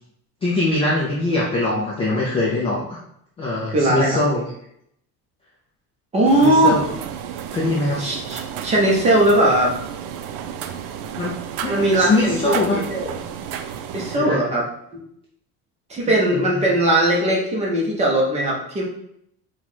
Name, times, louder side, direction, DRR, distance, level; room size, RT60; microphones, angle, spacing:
voice 1, 0.4-3.0 3.4-4.4 6.4-6.8 7.5-8.0 11.2-11.4 11.6-12.8 14.1-14.4 16.3-16.6, left 2 dB, 15° left, -5 dB, 0.3 m, -22 dB
voice 2, 3.7-4.2 6.1-6.8 8.0-9.7 11.7-13.1 13.9-14.7 14.9-15.0 15.9-18.8, right 1 dB, 20° right, -3 dB, 0.7 m, -19 dB
sound 1, 6.3-14.2, right 8 dB, 85° right, 0.5 m, -32 dB
4.5 x 2.3 x 4.0 m, 0.74 s
cardioid pair, 180°, 37 cm